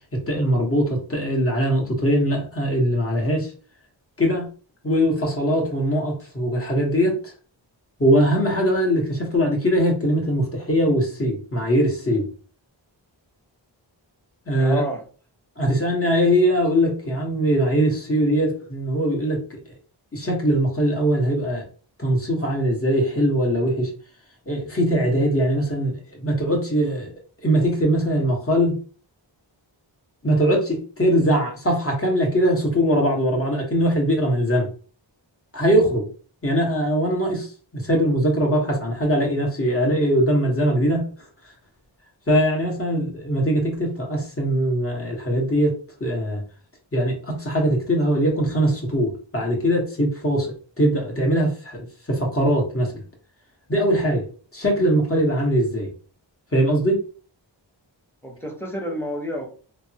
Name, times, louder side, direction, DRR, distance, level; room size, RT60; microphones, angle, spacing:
voice 1, 0.1-3.5 4.2-4.5 4.8-7.3 8.0-12.3 14.5-14.8 15.6-19.6 20.1-21.6 22.0-23.9 24.5-27.1 27.4-28.8 30.2-34.7 35.5-36.1 36.4-41.1 42.3-45.7 46.0-46.4 46.9-53.0 53.7-54.2 54.5-55.9 56.5-57.0, equal, 30° left, -1 dB, 1.2 m, -21 dB
voice 2, 14.6-15.0 58.2-59.5, equal, 5° left, 0 dB, 1.0 m, -29 dB
3.3 x 2.1 x 2.8 m, 0.40 s
wide cardioid pair, 40°, 46 cm